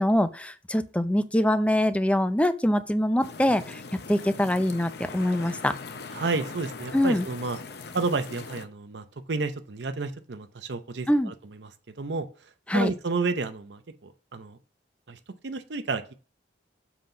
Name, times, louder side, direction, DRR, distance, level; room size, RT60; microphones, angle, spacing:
voice 1, 0.0-3.8 4.1-5.7 6.9-7.3 11.1-11.3 12.7-12.9, left 1 dB, 5° left, 11 dB, 0.5 m, -24 dB
sound 1, 3.2-8.7, left 4 dB, 65° left, 0.7 m, -40 dB
voice 2, 6.1-7.6 7.9-11.3 11.6-11.7 12.0-12.3 12.7-14.6 15.1-16.1, right 3 dB, 70° right, 9 dB, 0.7 m, -31 dB
7.4 x 3.9 x 5.7 m, 0.36 s
head